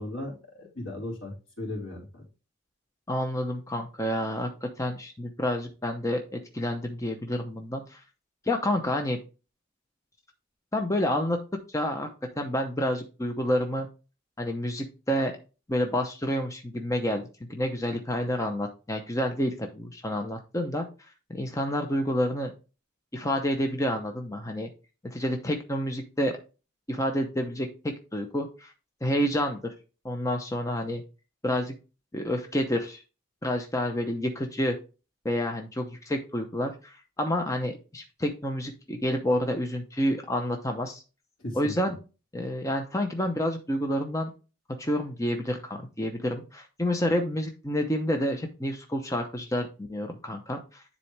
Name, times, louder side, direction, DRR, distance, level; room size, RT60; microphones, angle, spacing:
voice 1, 0.0-2.2 41.4-41.7, left 1 dB, 75° left, -1 dB, 3.2 m, -37 dB
voice 2, 3.1-8.0 8.4-9.2 10.7-11.4 11.7-12.1 12.4-13.9 14.4-15.3 15.7-17.2 17.5-20.9 21.3-22.5 23.1-24.7 25.0-26.3 26.9-27.7 28.1-28.7 29.0-29.7 30.0-31.0 31.4-31.7 32.1-33.0 33.4-34.8 35.2-41.0 41.5-42.0 42.3-44.3 44.8-50.8, left 1 dB, 15° left, 4 dB, 0.7 m, -29 dB
9.8 x 4.2 x 3.3 m, 0.32 s
head